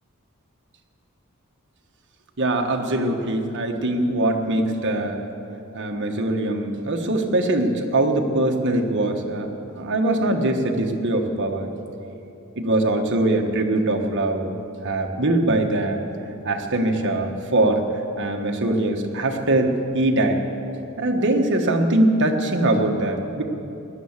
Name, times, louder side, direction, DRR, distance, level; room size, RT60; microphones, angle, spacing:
voice 1, 2.4-5.2 5.7-9.5 9.7-11.7 12.6-14.5 14.8-16.0 16.4-17.8 18.2-20.4 21.0-23.4, right 1 dB, 55° right, 3 dB, 1.4 m, -22 dB
17.5 x 10.5 x 7.4 m, 2.9 s
head